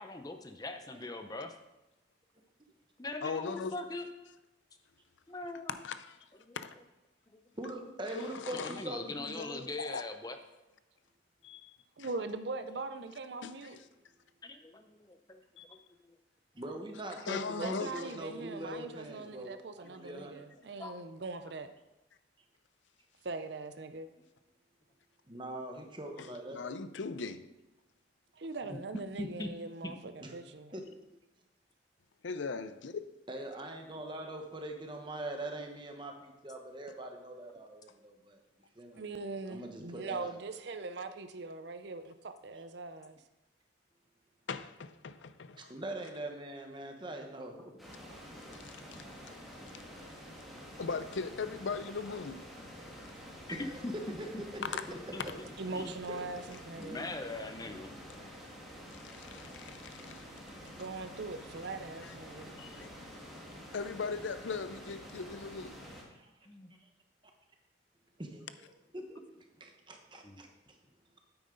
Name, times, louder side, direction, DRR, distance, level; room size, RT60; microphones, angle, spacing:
voice 1, 0.0-1.5 3.0-4.1 5.3-5.7 6.4-6.6 8.5-10.4 14.4-15.4 15.7-15.8 16.0-16.1 20.8-20.9 28.7-28.8 29.2-29.5 29.8-29.9 53.5-54.2 54.6-55.4 55.7-55.9 56.8-57.9 62.4-62.9 66.5-66.7 70.2-70.4, left 2 dB, 20° left, 0.6 m, -41 dB
voice 2, 3.2-3.8 5.7-6.2 6.6-6.7 8.4-8.7 9.4-10.0 11.4-11.8 13.4-13.5 15.6-15.7 17.3-17.9 26.2-27.5 32.2-33.0 44.5-45.7 48.6-49.0 50.8-52.4 59.1-60.2 62.0-62.1 62.6-62.9 63.7-65.7, left 5 dB, 75° left, 0.5 m, -39 dB
voice 3, 7.6-9.6 16.5-20.4 25.3-26.6 30.2-30.4 30.7-30.8 33.3-38.4 38.8-39.0 39.5-40.4 45.6-47.7 53.5-53.9 54.7-54.8 55.2-55.3 66.1-66.3 68.2-69.2 69.6-70.8, right 1 dB, 25° right, 1.1 m, -42 dB
voice 4, 12.0-13.8 17.6-21.7 23.2-24.1 28.3-30.7 39.0-43.2 55.6-57.2 60.8-62.6, right 3 dB, 60° right, 0.6 m, -41 dB
sound 1, 47.8-66.0, equal, ahead, 1.9 m, -49 dB
9.3 x 8.8 x 3.9 m
head